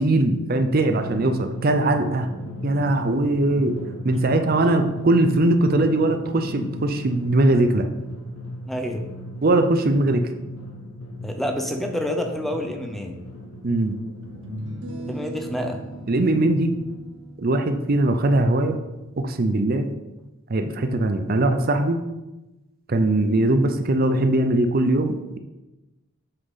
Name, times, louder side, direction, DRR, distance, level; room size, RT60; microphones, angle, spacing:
voice 1, 0.0-2.3 2.6-3.8 4.0-7.8 9.4-10.2 13.6-14.0 16.1-16.8 17.4-18.8 19.2-19.9 20.5-22.0 22.9-25.4, right 2 dB, 45° right, 7 dB, 0.6 m, -20 dB
Drum, 0.8-17.0, left 1 dB, 80° left, 1.0 m, -36 dB
voice 2, 8.7-9.0 11.2-13.2 15.1-15.8, equal, ahead, 4 dB, 0.6 m, -28 dB
sound 1, 13.1-13.2 14.2-19.5, right 2 dB, 60° right, 1.1 m, -39 dB
7.8 x 5.8 x 4.1 m, 1.0 s
head